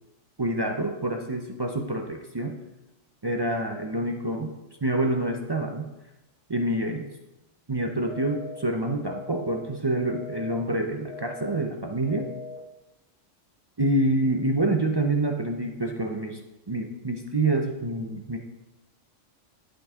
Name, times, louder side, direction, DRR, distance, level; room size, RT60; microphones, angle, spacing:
voice 1, 0.4-2.5 3.2-4.5 4.8-5.8 6.5-7.1 7.7-12.3 13.8-16.4 16.7-18.4, right 1 dB, 35° right, 2 dB, 0.4 m, -27 dB
sound 1, 8.1-8.6 9.1-9.6 10.1-10.6 11.1-11.6 12.1-12.6, left 3 dB, 5° right, 1.5 m, -40 dB
11.0 x 5.3 x 3.6 m, 1.0 s
omnidirectional pair, 1.3 m